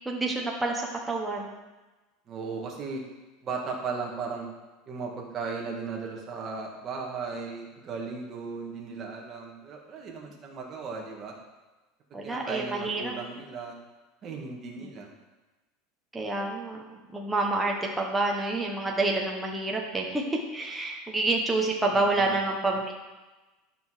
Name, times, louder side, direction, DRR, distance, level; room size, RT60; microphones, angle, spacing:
voice 1, 0.1-1.5 12.1-13.1 16.1-16.8 17.1-22.9, right 2 dB, 5° right, -1 dB, 0.9 m, -28 dB
voice 2, 2.3-3.0 3.4-4.5 4.9-11.3 12.2-13.8 14.2-15.1 21.9-22.4, right 4 dB, 25° right, -1 dB, 1.5 m, -36 dB
11.5 x 5.8 x 4.8 m, 1.2 s
supercardioid pair, 180°, 0 cm